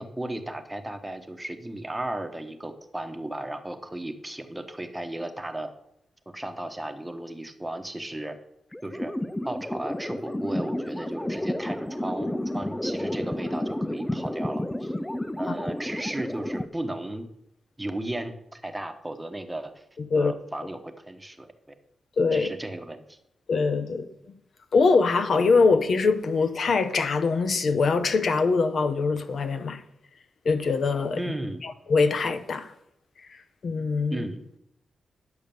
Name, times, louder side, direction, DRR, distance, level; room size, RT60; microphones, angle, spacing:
voice 1, 0.0-5.7 6.3-8.4 8.8-9.1 9.4-12.3 12.5-14.9 15.4-17.3 17.8-19.8 20.1-21.8 22.3-23.2 31.2-31.6 34.1-34.4, right 1 dB, 10° right, 1.0 m, -35 dB
sound 1, 8.7-16.7, left 1 dB, 10° left, 0.4 m, -31 dB
voice 2, 20.0-20.3 22.2-22.5 23.5-24.1 24.7-29.8 30.4-31.2 31.6-32.7 33.6-34.2, left 4 dB, 50° left, 0.7 m, -23 dB
10.5 x 6.5 x 6.9 m
wide cardioid pair, 150°, 0 cm